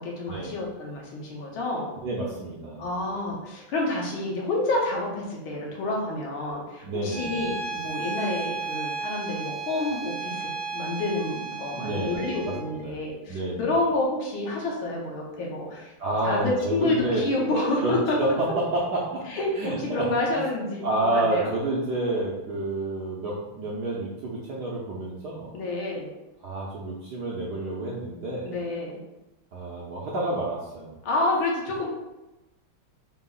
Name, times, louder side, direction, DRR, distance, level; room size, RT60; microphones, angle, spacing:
voice 1, 0.0-1.9 2.8-15.9 16.2-18.3 19.3-21.5 25.5-26.1 28.4-29.0 31.0-31.9, left 2 dB, 75° left, -2 dB, 1.6 m, -29 dB
voice 2, 2.0-2.9 6.8-7.4 11.7-12.2 12.7-12.9 13.3-13.7 16.0-17.2 17.8-17.9 18.2-20.1 20.8-25.5 26.4-28.5 29.5-31.0, right 2 dB, 70° right, -5 dB, 1.0 m, -29 dB
Bowed string instrument, 7.1-12.7, right 4 dB, 35° left, 0.6 m, -34 dB
4.5 x 2.0 x 3.8 m, 1.0 s
omnidirectional pair, 2.3 m